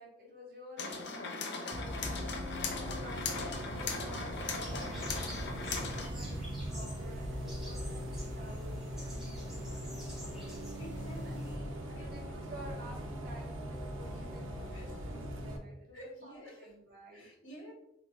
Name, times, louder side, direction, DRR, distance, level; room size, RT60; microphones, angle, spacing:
voice 1, 0.0-6.4 6.7-10.2 11.2-11.5 11.9-17.3, equal, 50° right, -3 dB, 1.3 m, -52 dB
sound 1, 0.8-6.1, left 4 dB, 60° left, 0.6 m, -39 dB
Bus, 1.7-15.6, equal, 90° right, 0.7 m, -40 dB
sound 2, 4.6-11.6, equal, ahead, 1.2 m, -46 dB
voice 2, 10.8-12.3 14.7-15.3 15.9-16.7 17.1-17.7, equal, 85° left, -3 dB, 1.4 m, -51 dB
3.9 x 3.4 x 3.0 m, 0.79 s
head